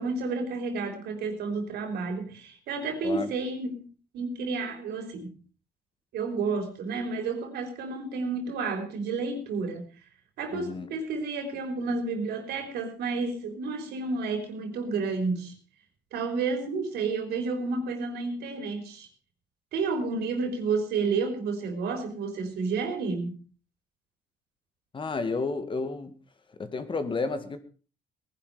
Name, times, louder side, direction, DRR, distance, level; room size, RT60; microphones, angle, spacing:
voice 1, 0.0-3.8 4.1-5.3 6.1-9.8 10.4-15.5 16.1-19.1 19.7-23.4, right 4 dB, 75° right, 7 dB, 3.9 m, -31 dB
voice 2, 10.5-10.9 24.9-26.1 26.6-27.6, left 3 dB, 30° left, 10 dB, 1.9 m, -31 dB
18.5 x 11.0 x 4.9 m, 0.37 s
cardioid pair, 110°, 17 cm